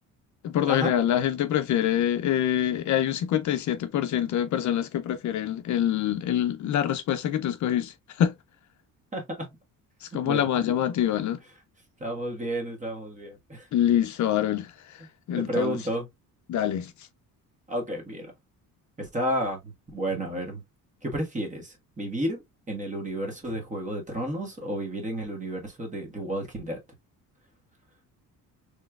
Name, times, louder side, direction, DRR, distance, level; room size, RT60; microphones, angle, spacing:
voice 1, 0.4-8.3 10.0-11.4 13.7-14.7 15.3-15.8 16.5-16.9, left 10 dB, 55° left, 0.5 m, -25 dB
voice 2, 9.1-9.5 10.2-10.5 12.0-13.7 15.3-16.1 17.7-18.3 19.0-20.6 21.0-22.4 22.7-26.8, equal, 20° right, 1.5 m, -31 dB
4.2 x 3.2 x 2.3 m
cardioid pair, 140°, 35 cm